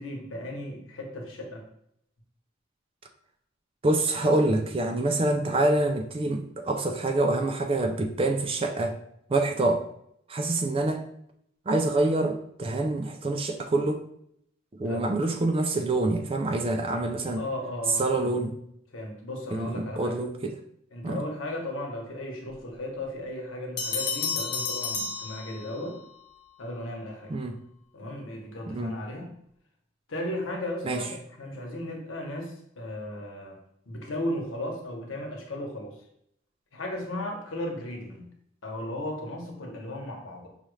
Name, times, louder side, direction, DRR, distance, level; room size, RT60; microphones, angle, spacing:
voice 1, 0.0-1.6 14.8-15.0 17.4-18.3 18.9-20.2 20.9-26.0 26.6-27.3 27.9-29.3 30.1-33.6 33.9-36.0 36.7-38.3 38.6-40.5, left 1 dB, 85° left, 0 dB, 1.1 m, -35 dB
voice 2, 3.8-9.0 9.3-9.8 10.3-11.1 11.7-14.0 14.7-17.4 18.0-18.6 19.5-20.6 21.0-21.2 27.3-27.6 28.7-28.9 30.8-31.0, right 2 dB, 30° right, 4 dB, 0.4 m, -26 dB
Bell, 23.8-26.0, left 4 dB, 55° left, 0.6 m, -31 dB
5.5 x 2.4 x 3.1 m, 0.72 s
head